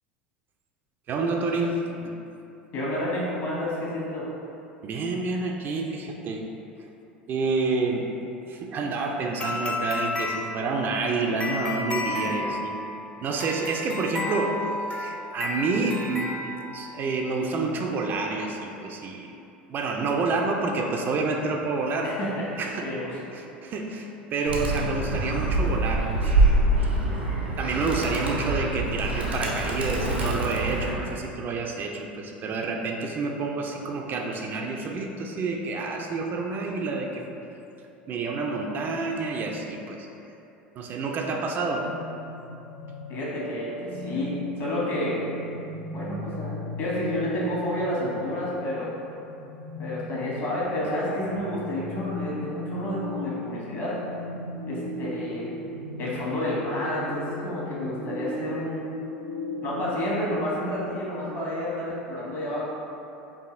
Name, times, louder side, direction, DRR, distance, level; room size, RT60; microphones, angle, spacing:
voice 1, 1.1-2.1 4.8-6.4 7.3-8.1 8.5-12.7 13.2-14.6 14.9-19.3 19.7-22.1 22.6-22.9 23.3-26.3 27.6-37.2 38.1-40.1 40.8-41.9, right 3 dB, 35° right, 1 dB, 0.4 m, -28 dB
voice 2, 2.7-4.3 12.4-12.5 22.0-23.2 24.4-24.5 27.2-27.3 43.1-45.2 45.9-46.5 46.8-48.9 49.8-54.0 54.7-55.5 56.0-58.8 59.6-62.7, left 1 dB, 50° left, -6 dB, 1.2 m, -30 dB
sound 1, 9.4-17.1, left 2 dB, 20° left, 0.5 m, -32 dB
Animal, 24.5-30.9, right 2 dB, 85° right, 0.6 m, -25 dB
sound 2, 41.8-60.4, left 1 dB, 70° left, 0.5 m, -37 dB
4.7 x 2.6 x 2.5 m, 2.8 s
hypercardioid pair, 80°, 6 cm